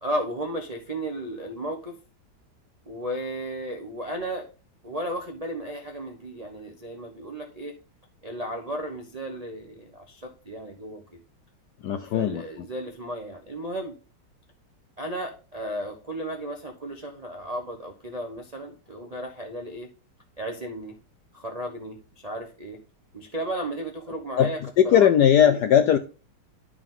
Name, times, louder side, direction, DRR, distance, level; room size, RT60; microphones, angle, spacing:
voice 1, 0.0-1.9 2.9-4.5 4.8-7.7 8.2-11.2 12.1-14.0 15.0-19.9 20.4-21.0 21.3-22.8 23.1-24.6 24.8-25.1 25.4-25.6, right 1 dB, 45° right, 0.4 m, -34 dB
voice 2, 11.8-12.4 24.4-24.5 24.8-26.0, left 9 dB, 75° left, 0.9 m, -18 dB
10.5 x 4.8 x 3.7 m
omnidirectional pair, 2.3 m